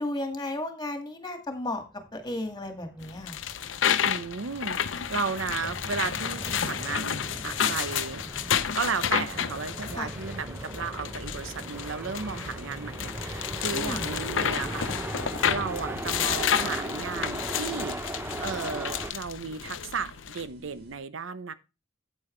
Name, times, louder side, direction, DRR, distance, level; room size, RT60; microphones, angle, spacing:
voice 1, 0.0-1.8 2.1-3.4 9.9-10.1 13.7-14.0, left 1 dB, 20° left, 1.9 m, -33 dB
sound 1, 2.0-19.1, right 1 dB, 10° right, 0.6 m, -38 dB
sound 2, 3.0-20.4, left 8 dB, 75° left, 0.6 m, -31 dB
voice 2, 4.0-4.8 5.1-8.2 8.7-15.2 15.4-18.0 18.4-21.5, right 5 dB, 90° right, 0.7 m, -34 dB
sound 3, 7.1-21.0, equal, 55° right, 1.9 m, -51 dB
8.6 x 8.6 x 3.2 m
head